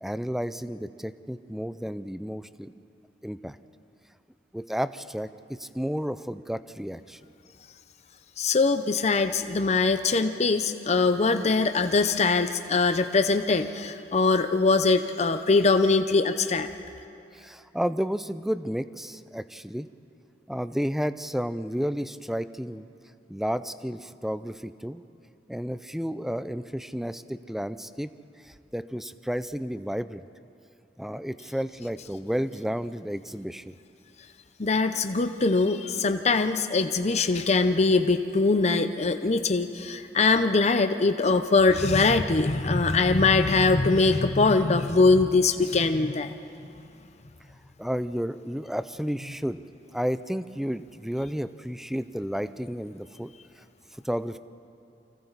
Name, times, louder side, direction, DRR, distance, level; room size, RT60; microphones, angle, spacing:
voice 1, 0.0-2.7 3.2-3.6 4.5-7.2 17.3-19.9 20.5-22.8 23.3-25.0 25.5-28.1 28.4-30.2 31.0-33.7 47.8-49.6 49.9-53.3 54.0-54.4, equal, ahead, 13 dB, 0.4 m, -32 dB
voice 2, 8.4-16.7 34.6-46.3, left 3 dB, 35° left, 8 dB, 0.6 m, -22 dB
29.0 x 25.5 x 4.1 m, 2.6 s
head